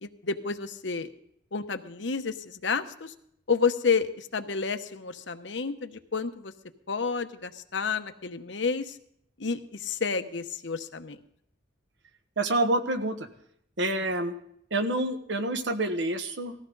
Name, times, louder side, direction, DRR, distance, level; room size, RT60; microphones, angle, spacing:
voice 1, 0.0-1.1 1.5-3.1 3.5-6.5 6.9-9.0 9.4-11.2, left 5 dB, 70° left, 9 dB, 1.0 m, -30 dB
voice 2, 12.4-13.3 13.8-14.3 14.7-16.5, right 2 dB, 70° right, 7 dB, 1.3 m, -27 dB
19.0 x 14.5 x 4.0 m, 0.72 s
head